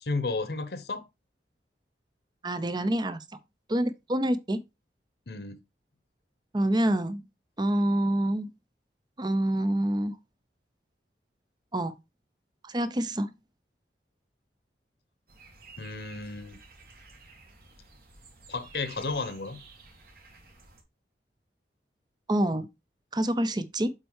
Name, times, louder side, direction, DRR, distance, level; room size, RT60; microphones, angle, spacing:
voice 1, 0.0-1.1 5.3-5.6 15.8-16.6 18.5-19.6, left 3 dB, 65° left, 0.9 m, -33 dB
voice 2, 2.4-3.2 3.7-4.6 6.5-7.2 7.6-8.5 9.2-10.1 11.7-11.9 12.6-13.3 22.3-22.7 23.1-23.9, right 1 dB, 25° right, 0.7 m, -27 dB
sound 1, 15.3-20.8, right 3 dB, 55° right, 2.0 m, -52 dB
7.5 x 4.5 x 4.7 m
head